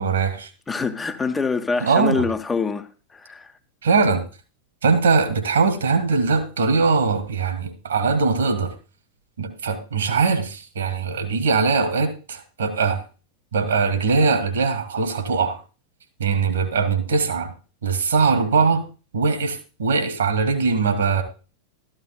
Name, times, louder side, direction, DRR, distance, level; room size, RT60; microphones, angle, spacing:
voice 1, 0.0-0.5 1.8-2.3 3.8-4.2 4.8-8.7 9.4-13.0 13.5-15.6 16.2-17.5 17.8-18.8 19.1-21.2, right 4 dB, 70° right, 2.3 m, -21 dB
voice 2, 0.7-3.5, left 4 dB, 15° left, 0.8 m, -25 dB
13.5 x 13.0 x 2.3 m
figure-of-eight pair, 90°, 0 cm